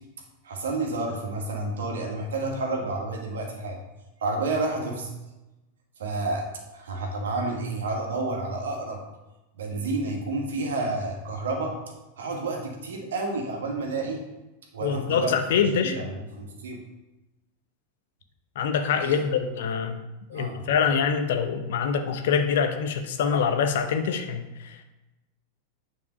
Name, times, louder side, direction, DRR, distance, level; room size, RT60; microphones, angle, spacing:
voice 1, 0.4-3.8 4.2-5.2 6.0-9.0 9.6-11.8 12.2-14.3 14.7-15.4 15.8-16.8 19.0-19.2 20.3-20.6, right 2 dB, 65° right, 0 dB, 2.0 m, -30 dB
voice 2, 14.8-16.1 18.5-20.0 20.3-24.8, left 6 dB, 55° left, 6 dB, 0.9 m, -25 dB
9.4 x 4.8 x 5.4 m, 1.0 s
figure-of-eight pair, 90°, 0 cm